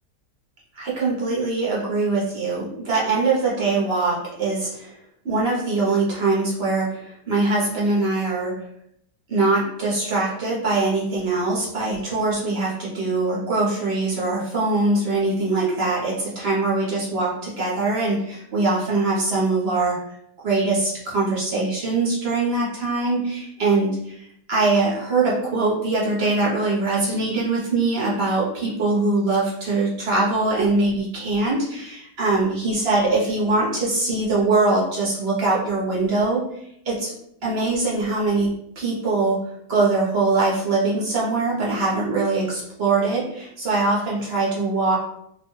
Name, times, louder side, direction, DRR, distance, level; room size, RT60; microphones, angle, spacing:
voice 1, 0.7-4.9 5.2-8.6 9.3-20.0 20.4-36.5 36.8-37.1 37.4-45.0, right 3 dB, 50° right, -5 dB, 0.8 m, -22 dB
2.8 x 2.2 x 3.0 m, 0.74 s
omnidirectional pair, 1.8 m